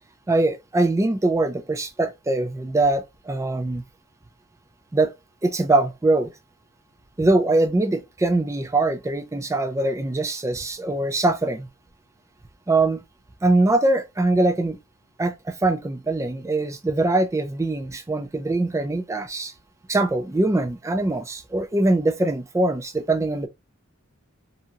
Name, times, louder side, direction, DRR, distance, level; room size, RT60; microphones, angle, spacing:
voice 1, 0.3-3.8 4.9-5.1 5.4-6.3 7.2-11.7 12.7-13.0 13.4-14.8 15.2-19.5 19.9-23.5, right 2 dB, 15° right, 0.3 m, -22 dB
2.8 x 2.6 x 2.4 m
head